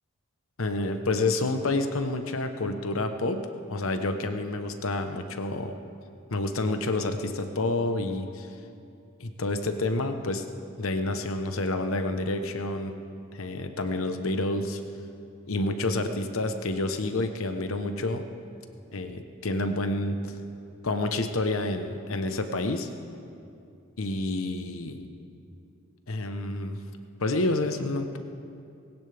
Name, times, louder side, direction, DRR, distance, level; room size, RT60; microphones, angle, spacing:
voice 1, 0.6-3.4 3.7-5.8 6.3-8.5 9.2-10.4 10.8-12.9 13.3-14.8 15.5-18.2 18.9-20.3 20.8-22.9 24.0-25.0 26.1-26.8 27.2-28.2, left 2 dB, 80° left, 7 dB, 1.0 m, -29 dB
20.0 x 17.5 x 3.5 m, 2.5 s
head